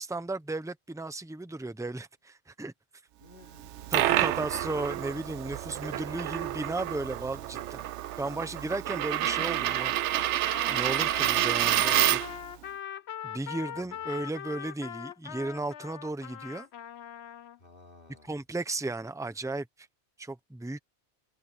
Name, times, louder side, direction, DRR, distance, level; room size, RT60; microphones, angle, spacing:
voice 1, 0.0-2.7 3.9-7.8 8.2-10.2 10.7-12.2 13.2-16.7 18.3-19.7 20.2-20.8, right 2 dB, 5° right, 0.9 m, -35 dB
voice 2, 3.2-4.5 13.7-14.2 17.6-18.3, left 2 dB, 50° left, 3.5 m, -56 dB
Coin (dropping), 3.6-12.5, right 13 dB, 90° right, 0.9 m, -28 dB
Trumpet, 10.5-17.6, left 9 dB, 70° left, 1.1 m, -41 dB
omnidirectional pair, 1.1 m